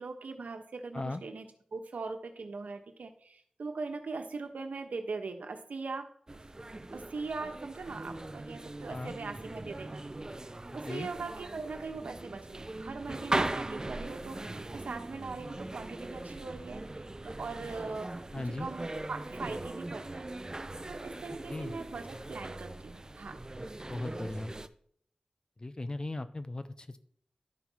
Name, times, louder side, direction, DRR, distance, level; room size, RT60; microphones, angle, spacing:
voice 1, 0.0-6.5 6.9-10.0 10.7-16.8 17.2-20.3 20.9-23.4, right 4 dB, 85° right, 6 dB, 1.2 m, -41 dB
sound 1, 6.3-24.7, right 2 dB, 25° right, 0.6 m, -40 dB
voice 2, 18.3-18.7 21.5-21.8 23.8-24.5 25.6-27.0, left 2 dB, 35° left, 11 dB, 0.8 m, -37 dB
12.0 x 5.5 x 4.6 m, 0.63 s
wide cardioid pair, 65°, 3 cm